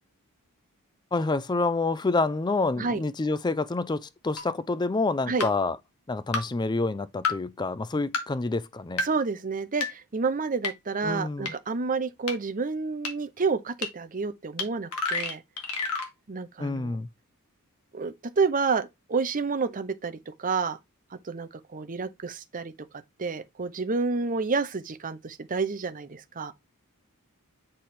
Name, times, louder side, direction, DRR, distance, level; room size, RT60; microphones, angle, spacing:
voice 1, 1.1-5.8 6.1-9.1 11.0-11.5 16.6-17.1, left 3 dB, 20° left, 0.4 m, -28 dB
sound 1, 4.4-4.5 5.4-5.5 6.3-6.4 7.2-7.3 8.1-8.2 9.0-9.1 9.8-9.9 10.6-10.7 11.5-11.6 12.3-12.4 13.0-13.1 13.8-13.9 14.6-14.7 14.9-16.1, left 4 dB, 75° left, 1.8 m, -28 dB
voice 2, 9.0-15.4 16.3-17.0 17.9-20.8 21.2-22.7 23.2-26.5, right 4 dB, 35° right, 0.7 m, -29 dB
7.6 x 3.2 x 4.3 m
head